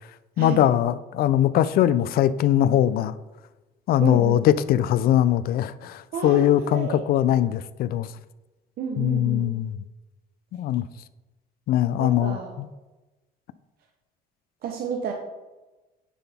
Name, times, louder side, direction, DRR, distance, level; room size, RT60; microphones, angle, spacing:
voice 1, 0.4-3.2 3.9-8.1 9.0-9.8 10.5-10.9 11.7-12.7, left 11 dB, 65° left, 16 dB, 0.4 m, -21 dB
voice 2, 4.0-4.4 6.1-7.0 8.8-9.4 12.0-12.5 14.6-15.1, right 6 dB, 65° right, 2 dB, 0.8 m, -31 dB
9.7 x 4.0 x 3.5 m, 1.1 s
cardioid pair, 110°, 17 cm